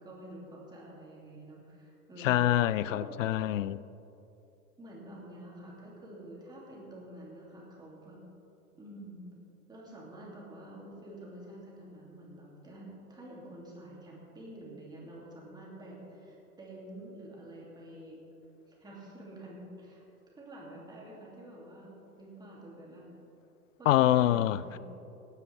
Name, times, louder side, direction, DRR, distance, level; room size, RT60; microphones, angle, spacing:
voice 1, 0.0-2.4 2.8-3.1 4.8-8.2 8.7-9.3 9.7-18.2 18.7-20.0 20.4-23.0 23.8-24.8, right 1 dB, 10° right, 2.8 m, -48 dB
voice 2, 2.2-3.8 23.9-24.6, left 13 dB, 55° left, 0.5 m, -25 dB
17.0 x 9.8 x 3.5 m
hypercardioid pair, 115°, 46 cm